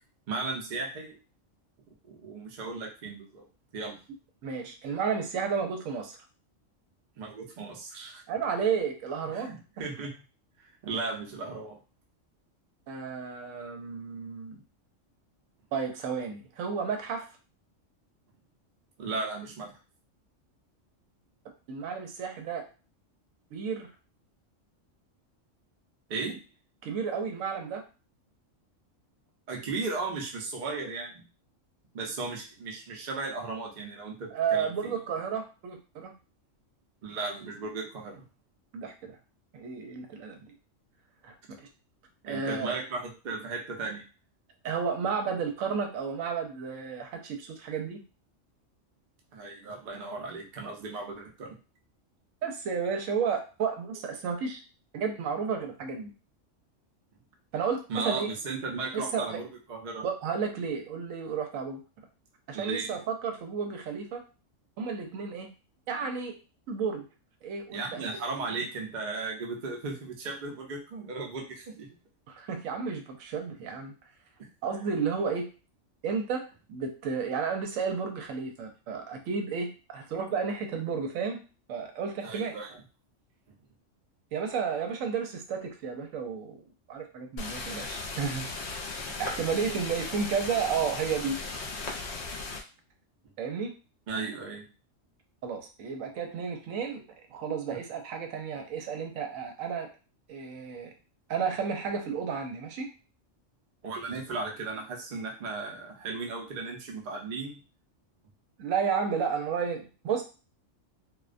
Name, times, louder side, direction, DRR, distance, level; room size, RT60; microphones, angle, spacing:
voice 1, 0.3-1.2 2.0-3.5 3.7-4.0 7.2-8.2 9.2-10.2 10.6-11.8 19.0-19.8 26.1-26.4 29.5-31.2 31.9-34.9 37.0-38.3 42.2-44.0 49.3-51.6 57.9-60.1 62.5-63.0 67.7-71.9 74.4-74.5 82.2-82.8 94.1-94.7 97.7-97.8 103.8-107.6, right 3 dB, 50° right, 0 dB, 0.6 m, -36 dB
voice 2, 4.4-6.2 8.3-9.5 12.9-14.6 15.7-17.3 21.7-22.7 23.5-23.9 26.8-27.8 34.3-36.1 38.7-39.2 39.5-40.5 41.2-41.7 42.3-42.8 44.6-48.0 52.4-54.6 54.9-56.1 57.5-58.3 58.9-59.4 60.0-61.8 62.5-64.2 64.8-65.5 65.9-66.4 66.7-67.1 67.4-68.0 68.5-68.6 72.3-73.9 74.6-75.5 76.0-81.4 81.7-82.5 84.3-86.6 86.9-88.5 88.9-91.4 93.4-93.7 95.4-97.0 97.3-99.9 100.3-100.9 101.3-102.9 108.6-110.2, right 6 dB, 85° right, 4 dB, 1.0 m, -32 dB
sound 1, 87.4-92.6, left 3 dB, 65° left, 0.8 m, -37 dB
2.4 x 2.1 x 2.4 m, 0.33 s
omnidirectional pair, 1.3 m